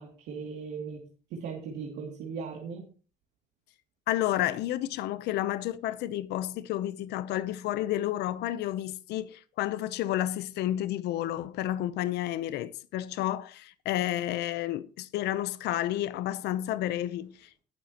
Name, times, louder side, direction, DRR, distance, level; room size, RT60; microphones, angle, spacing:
voice 1, 0.0-2.9, right 5 dB, 85° right, 2.6 m, -38 dB
voice 2, 4.1-17.5, left 13 dB, 80° left, 0.7 m, -31 dB
19.5 x 7.3 x 2.9 m
cardioid pair, 110°, 17 cm